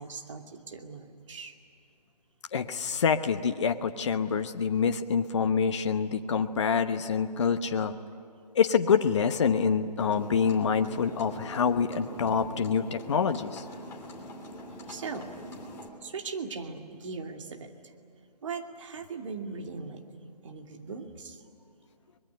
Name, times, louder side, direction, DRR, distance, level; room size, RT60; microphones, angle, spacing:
voice 1, 0.0-1.6 14.9-15.3 16.0-17.9 18.4-21.4, right 4 dB, 50° right, 3 dB, 2.6 m, -39 dB
voice 2, 2.5-7.9 8.5-13.6, left 6 dB, 45° left, 7 dB, 1.0 m, -26 dB
sound 1, 10.0-15.9, equal, 10° left, 2.7 m, -43 dB
23.5 x 21.5 x 10.0 m, 2.4 s
figure-of-eight pair, 150°, 21 cm